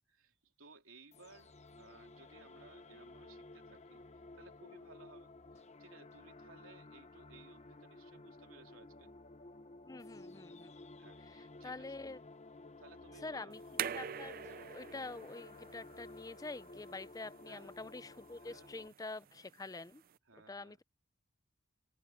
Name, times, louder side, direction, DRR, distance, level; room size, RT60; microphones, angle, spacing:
voice 1, 0.1-4.0 4.3-9.1 11.0-11.9 12.8-13.6 17.5-17.8 18.4-18.9 20.3-20.8, right 4 dB, 85° right, 3.1 m, -60 dB
sound 1, 1.1-18.9, left 2 dB, 35° left, 0.9 m, -54 dB
voice 2, 9.8-10.8 11.2-12.2 13.2-14.4 14.7-20.0 20.5-20.8, left 3 dB, 15° left, 0.5 m, -46 dB
sound 2, 13.5-20.2, right 9 dB, 45° right, 0.4 m, -46 dB
head